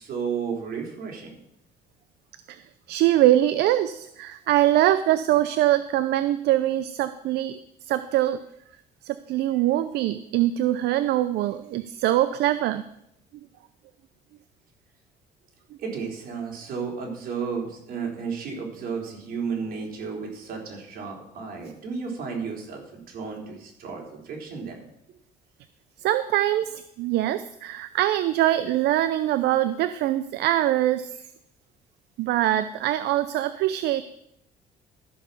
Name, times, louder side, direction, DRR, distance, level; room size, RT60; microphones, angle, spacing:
voice 1, 0.0-1.3 15.8-24.8, right 5 dB, 60° right, -1 dB, 3.8 m, -33 dB
voice 2, 2.9-7.6 7.8-8.4 9.0-12.8 26.0-31.1 32.2-34.0, right 13 dB, 75° right, 12 dB, 0.6 m, -23 dB
13.5 x 5.8 x 7.0 m, 0.79 s
cardioid pair, 110°, 17 cm